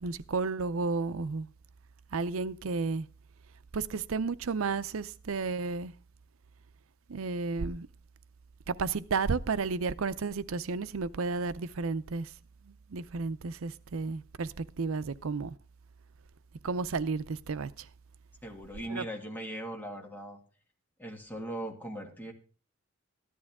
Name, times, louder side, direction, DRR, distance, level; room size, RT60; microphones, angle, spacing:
voice 1, 0.0-1.5 2.1-3.1 3.7-5.9 7.1-7.9 8.7-12.3 12.9-15.5 16.6-17.9 18.9-19.0, right 4 dB, 80° right, 0.6 m, -32 dB
voice 2, 18.4-20.4 21.0-22.3, right 1 dB, 10° left, 1.9 m, -39 dB
14.5 x 11.0 x 3.6 m
head